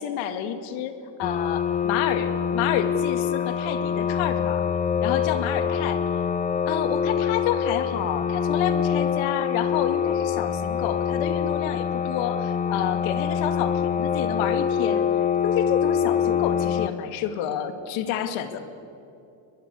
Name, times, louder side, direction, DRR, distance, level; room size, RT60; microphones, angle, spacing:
voice 1, 0.0-4.6 5.0-6.0 6.6-15.1 15.4-18.6, left 9 dB, 90° left, 9 dB, 2.4 m, -29 dB
sound 1, 1.2-16.9, left 8 dB, 20° left, 0.5 m, -25 dB
22.5 x 21.5 x 8.4 m, 2.7 s
cardioid pair, 140°, 45 cm